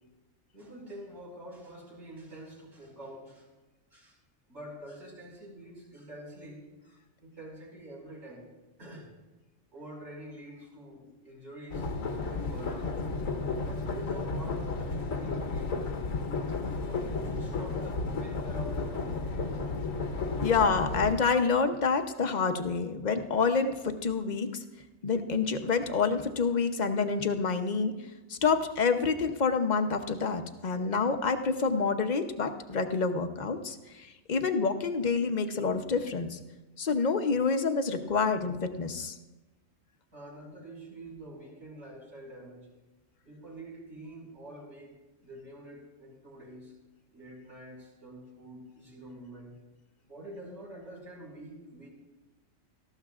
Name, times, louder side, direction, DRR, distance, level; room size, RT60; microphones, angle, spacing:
voice 1, 0.5-3.5 3.9-4.2 4.5-8.5 8.8-9.1 9.7-11.9 12.3-13.0 13.5-15.8 16.8-19.2 19.6-19.8 40.1-42.7 43.3-46.7 47.1-49.5 50.1-51.9, right 1 dB, 55° right, -5 dB, 5.5 m, -46 dB
sound 1, 11.7-21.1, left 3 dB, 75° left, 1.4 m, -33 dB
voice 2, 20.4-24.6 25.0-27.9 28.3-36.4 36.8-39.1, left 5 dB, 40° left, 7 dB, 0.8 m, -28 dB
18.5 x 14.0 x 2.4 m, 1.1 s
omnidirectional pair, 1.4 m